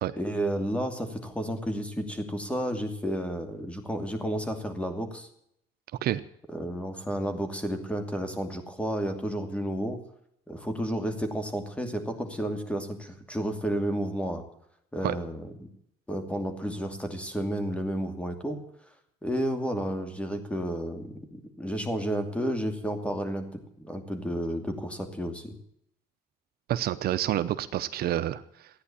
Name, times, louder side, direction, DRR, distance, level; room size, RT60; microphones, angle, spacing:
voice 1, 0.2-5.3 6.5-10.0 10.5-14.4 14.9-15.7 16.1-18.6 19.2-25.5, equal, 5° left, 6 dB, 2.6 m, -31 dB
voice 2, 26.7-28.7, right 12 dB, 65° right, 12 dB, 0.8 m, -28 dB
14.5 x 9.7 x 8.5 m, 0.73 s
cardioid pair, 110°, 17 cm